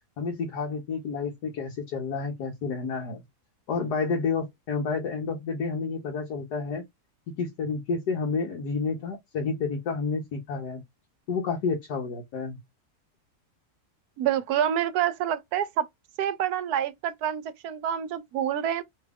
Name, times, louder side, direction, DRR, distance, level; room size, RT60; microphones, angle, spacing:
voice 1, 0.2-3.2 3.7-6.8 7.4-10.8 11.3-12.6, left 4 dB, 85° left, 1.5 m, -30 dB
voice 2, 14.2-15.9 16.2-18.8, right 10 dB, 75° right, 1.1 m, -27 dB
3.4 x 2.3 x 3.4 m
omnidirectional pair, 1.7 m